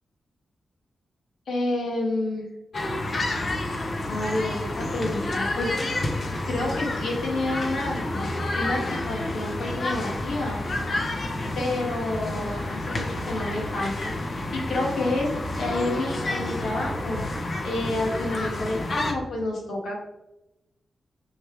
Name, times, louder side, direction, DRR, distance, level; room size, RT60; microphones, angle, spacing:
voice 1, 1.5-2.5 4.1-5.9 6.5-8.0 8.5-10.6 11.5-14.2 14.5-20.0, left 2 dB, 85° left, -1 dB, 2.2 m, -29 dB
sound 1, 2.7-19.1, left 2 dB, 50° left, 1.2 m, -29 dB
6.6 x 6.3 x 3.6 m, 0.94 s
cardioid pair, 80°, 0 cm